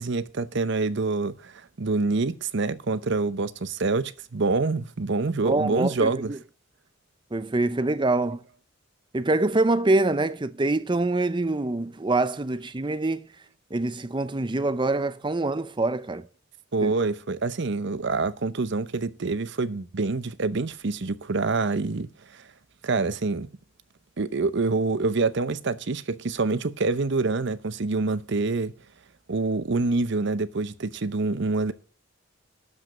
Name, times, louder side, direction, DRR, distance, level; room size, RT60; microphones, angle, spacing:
voice 1, 0.0-6.4 16.7-22.4 22.8-23.5 24.2-28.7 29.3-31.7, right 3 dB, 60° right, 0.7 m, -26 dB
voice 2, 5.4-6.4 7.3-8.4 9.1-13.3 13.7-16.2 16.8-16.9, right 2 dB, 25° right, 0.6 m, -25 dB
12.0 x 5.3 x 7.4 m
head